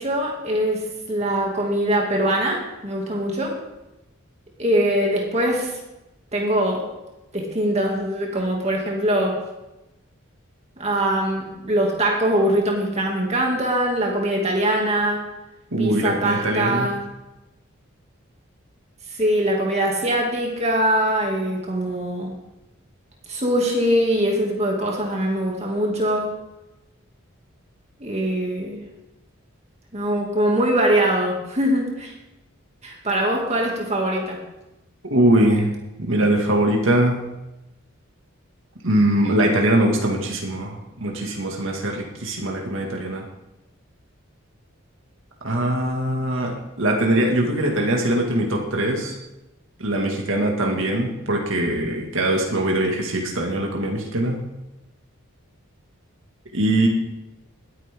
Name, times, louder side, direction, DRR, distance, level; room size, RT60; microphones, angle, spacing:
voice 1, 0.0-3.6 4.6-5.7 6.3-6.9 7.3-9.4 10.8-15.2 15.8-17.0 19.2-22.3 23.3-26.4 28.0-28.8 29.9-32.1 32.8-34.4, right 1 dB, 30° right, 0 dB, 2.5 m, -22 dB
voice 2, 15.7-16.9 35.1-35.7 36.0-37.2 38.8-43.2 45.4-49.2 49.8-54.4 56.5-56.9, right 1 dB, 70° right, 0 dB, 2.2 m, -22 dB
21.0 x 9.6 x 3.7 m, 0.96 s
head